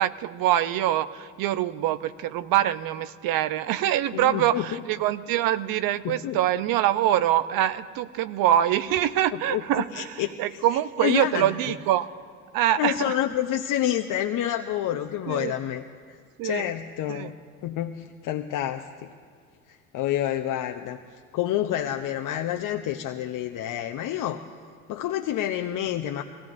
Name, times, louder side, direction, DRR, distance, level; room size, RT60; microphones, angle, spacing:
voice 1, 0.0-12.1 12.5-13.2 15.3-15.5 16.4-16.6 17.1-17.3, right 12 dB, 55° right, 12 dB, 0.8 m, -24 dB
voice 2, 4.1-4.8 6.0-6.4 9.3-10.6 11.0-11.7 12.8-15.8 16.1-16.2 16.4-17.3 17.6-19.1 19.7-21.0 21.3-24.4 24.9-26.2, left 11 dB, 50° left, 4 dB, 0.9 m, -28 dB
23.0 x 17.0 x 2.7 m, 2.1 s
hypercardioid pair, 65°, 41 cm